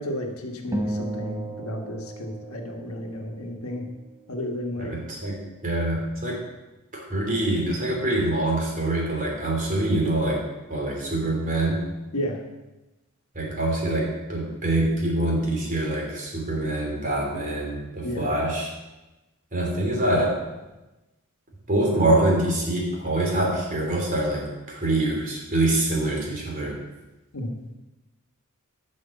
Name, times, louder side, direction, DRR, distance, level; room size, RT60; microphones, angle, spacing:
voice 1, 0.0-3.9 4.3-4.9 12.1-12.4 18.0-18.3 27.3-27.5, left 1 dB, 70° left, 2 dB, 1.5 m, -32 dB
sound 1, 0.7-3.3, right 1 dB, 15° right, 0.9 m, -33 dB
voice 2, 4.8-6.4 6.9-10.4 10.7-11.8 13.3-18.7 19.5-20.4 21.7-26.8, right 1 dB, 40° right, -2 dB, 3.2 m, -25 dB
11.0 x 6.5 x 7.0 m, 1.1 s
head